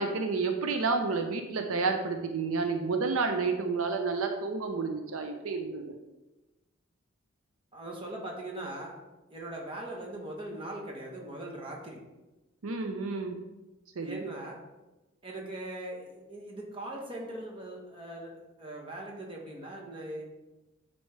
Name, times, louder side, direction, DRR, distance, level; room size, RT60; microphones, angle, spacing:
voice 1, 0.0-5.9 12.6-13.4 14.0-14.2, right 4 dB, 80° right, 5 dB, 0.6 m, -30 dB
voice 2, 7.7-8.9 9.3-12.0 14.0-14.6 15.2-20.2, right 1 dB, 25° right, -2 dB, 1.2 m, -40 dB
9.6 x 4.2 x 3.3 m, 1.1 s
head